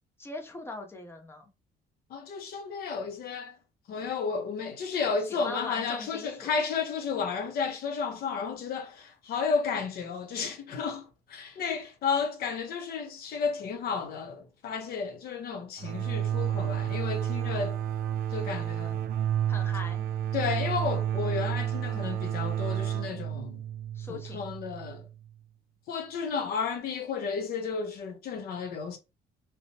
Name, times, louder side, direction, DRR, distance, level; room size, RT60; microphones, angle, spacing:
voice 1, 0.2-1.5 5.2-6.5 19.5-20.0 23.9-24.5, left 3 dB, 15° left, 0.7 m, -41 dB
voice 2, 2.1-3.6 3.9-17.8 18.3-19.0 20.3-23.6 24.1-25.0 25.9-29.0, left 5 dB, 65° left, 0.8 m, -32 dB
sound 1, 15.8-25.3, right 10 dB, 60° right, 0.4 m, -31 dB
2.8 x 2.1 x 2.8 m
cardioid pair, 110°, 17 cm